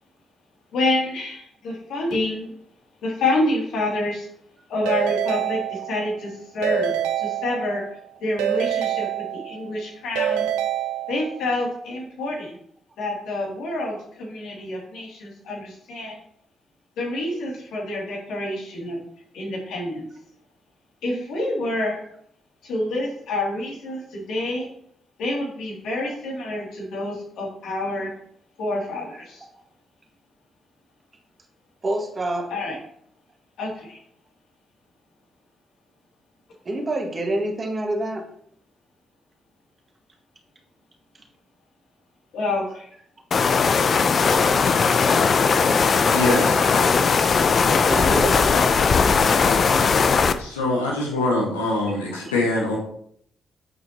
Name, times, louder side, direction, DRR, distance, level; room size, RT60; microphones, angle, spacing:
voice 1, 0.7-2.5 3.0-4.3 4.7-7.8 8.2-9.1 9.3-10.5 11.1-12.6 13.0-16.2 17.0-19.0 19.3-20.1 21.0-22.0 22.6-24.7 25.2-28.1 28.6-29.5 32.5-32.8 33.6-34.0 42.3-42.9, left 2 dB, 70° left, -2 dB, 2.6 m, -27 dB
Keyboard (musical) / Ringtone, 4.9-6.2 6.6-7.9 8.4-9.7 10.2-11.5, right 11 dB, 80° right, 0.6 m, -26 dB
voice 2, 31.8-32.5 36.7-38.3 43.5-43.6 47.9-48.5, right 1 dB, 40° right, 2 dB, 1.9 m, -26 dB
sound 1, 43.3-50.3, left 5 dB, 50° left, 0.6 m, -18 dB
voice 3, 46.1-46.6 48.0-48.1 50.4-52.8, left 2 dB, 90° left, -2 dB, 1.5 m, -23 dB
8.8 x 6.5 x 2.9 m, 0.67 s
hypercardioid pair, 40°, 0 cm